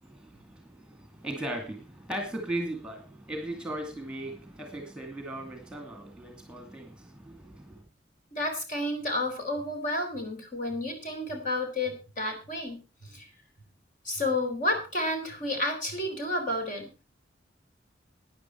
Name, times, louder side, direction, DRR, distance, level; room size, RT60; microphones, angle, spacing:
voice 1, 0.0-7.8, right 1 dB, 5° right, 2.5 m, -38 dB
voice 2, 8.3-13.3 14.0-16.9, left 1 dB, 45° left, 4.1 m, -31 dB
13.5 x 9.9 x 4.6 m
head